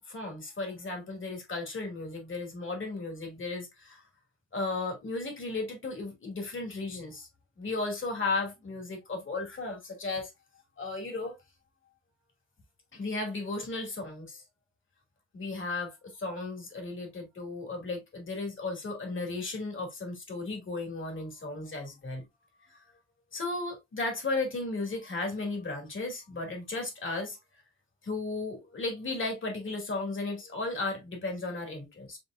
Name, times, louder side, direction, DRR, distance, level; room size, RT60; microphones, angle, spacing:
voice 1, 0.1-4.0 4.5-7.3 7.6-10.3 10.8-11.4 12.9-14.4 15.3-22.2 23.3-27.4 28.0-32.2, left 3 dB, 40° left, 2.5 m, -35 dB
5.2 x 3.7 x 2.5 m
cardioid pair, 90°, 30 cm